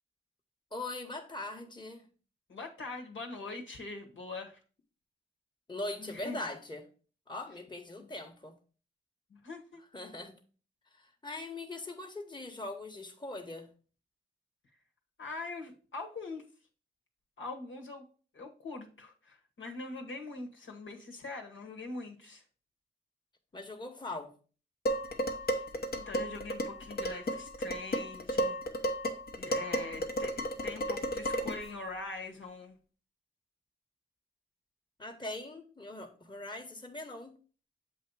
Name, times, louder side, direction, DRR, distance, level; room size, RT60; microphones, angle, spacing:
voice 1, 0.7-2.0 5.7-6.9 7.3-8.6 9.9-10.3 11.0-13.7 23.5-24.3 35.0-37.3, left 2 dB, 20° left, 1.2 m, -41 dB
voice 2, 2.5-4.6 6.0-6.4 8.0-8.1 9.3-9.8 15.2-16.4 17.4-18.0 18.3-22.4 25.5-25.6 25.9-28.6 29.4-32.8, left 3 dB, 70° left, 1.3 m, -43 dB
Dishes pots and pans, 24.9-31.7, equal, 50° left, 0.9 m, -33 dB
7.2 x 2.8 x 4.7 m
cardioid pair, 45°, 21 cm